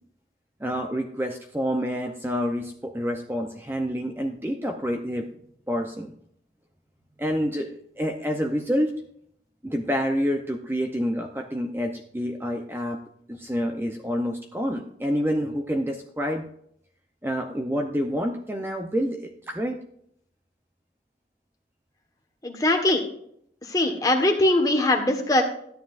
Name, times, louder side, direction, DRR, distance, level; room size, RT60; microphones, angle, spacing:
voice 1, 0.6-5.3 5.7-6.1 7.2-8.9 9.6-13.0 13.3-16.4 17.2-19.8, equal, 15° right, 4 dB, 0.7 m, -28 dB
voice 2, 22.4-23.0 23.7-25.4, left 1 dB, 20° left, 2 dB, 1.4 m, -21 dB
13.0 x 9.2 x 2.5 m, 0.67 s
head